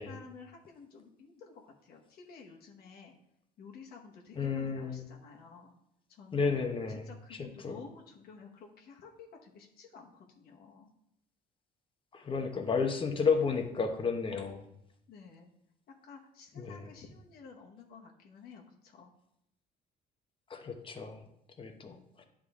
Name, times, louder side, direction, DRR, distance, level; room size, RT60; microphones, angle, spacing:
voice 1, 0.0-3.1 3.6-5.7 6.1-6.6 7.0-10.9 15.1-15.5 15.9-19.1 21.9-22.0, left 5 dB, 65° left, 0 dB, 1.2 m, -52 dB
voice 2, 4.4-5.0 6.3-7.8 12.1-14.7 16.6-16.8 20.5-21.2 21.6-22.0, left 5 dB, 30° left, 5 dB, 1.0 m, -32 dB
11.0 x 3.8 x 3.7 m, 0.79 s
cardioid pair, 110°, 17 cm